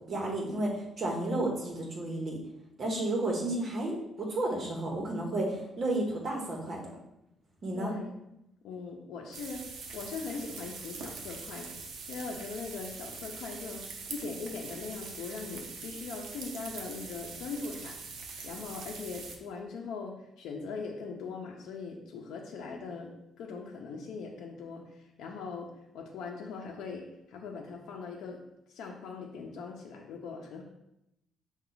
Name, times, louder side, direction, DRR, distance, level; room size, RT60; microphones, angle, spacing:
voice 1, 0.1-2.4 2.8-6.8 7.6-7.9, right 1 dB, 35° right, -1 dB, 1.1 m, -32 dB
voice 2, 7.7-8.1 8.6-23.1 23.4-28.4 28.7-30.6, left 4 dB, 80° left, -1 dB, 0.6 m, -41 dB
sound 1, 9.3-19.4, right 4 dB, 80° right, 0.7 m, -43 dB
5.6 x 2.3 x 3.9 m, 0.84 s
cardioid pair, 160°, 0 cm